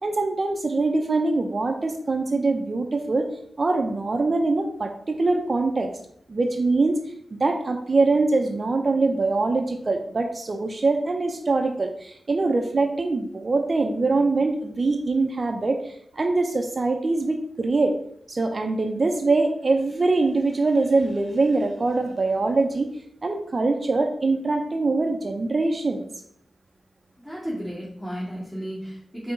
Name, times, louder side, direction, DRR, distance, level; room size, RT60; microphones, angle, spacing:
voice 1, 0.0-3.3 3.6-5.9 6.3-7.0 7.3-17.9 18.3-22.9 23.2-26.0, right 3 dB, 50° right, 4 dB, 0.7 m, -23 dB
voice 2, 27.2-29.3, equal, 10° left, -8 dB, 2.3 m, -33 dB
5.4 x 3.4 x 5.1 m, 0.69 s
cardioid pair, 40°, 0 cm